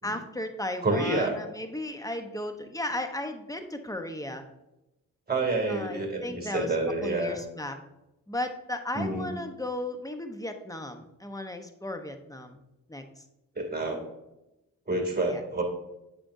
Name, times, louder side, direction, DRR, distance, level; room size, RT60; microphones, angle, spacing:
voice 1, 0.0-4.4 5.7-6.7 7.0-7.7 8.3-12.6 12.9-13.2 15.3-15.4, left 1 dB, 10° left, 7 dB, 1.0 m, -35 dB
voice 2, 0.8-1.4 5.3-7.4 8.9-9.3 13.5-14.0 14.9-15.6, right 2 dB, 25° right, 1 dB, 2.7 m, -28 dB
8.5 x 6.2 x 2.7 m, 0.95 s
cardioid pair, 50°, 36 cm